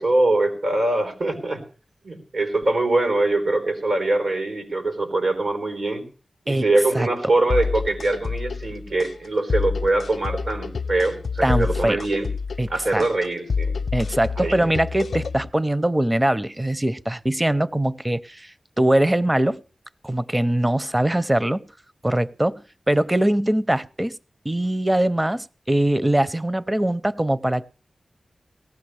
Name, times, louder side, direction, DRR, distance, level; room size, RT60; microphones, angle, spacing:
voice 1, 0.0-1.6 2.0-6.0 6.5-12.3 12.7-13.8 14.4-14.7, right 2 dB, 85° right, 3.9 m, -23 dB
sound 1, 7.5-15.5, left 5 dB, 75° left, 0.6 m, -28 dB
voice 2, 11.4-12.1 12.6-13.1 13.9-19.6 20.0-21.6 22.0-24.2 24.4-27.7, right 1 dB, 20° right, 0.6 m, -22 dB
18.5 x 15.0 x 3.3 m
cardioid pair, 50°, 0 cm